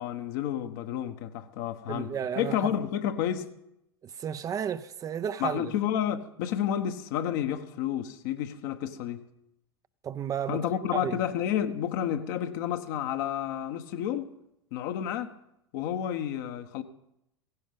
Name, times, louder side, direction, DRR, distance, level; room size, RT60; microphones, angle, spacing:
voice 1, 0.0-2.1 2.4-3.5 5.4-9.3 10.5-14.3 14.7-15.4 15.7-16.8, left 10 dB, 55° left, 1.2 m, -30 dB
voice 2, 1.9-2.7 4.0-5.7 10.0-10.6 10.9-11.1, right 8 dB, 25° right, 0.7 m, -32 dB
16.5 x 16.0 x 5.3 m
figure-of-eight pair, 80°, 13 cm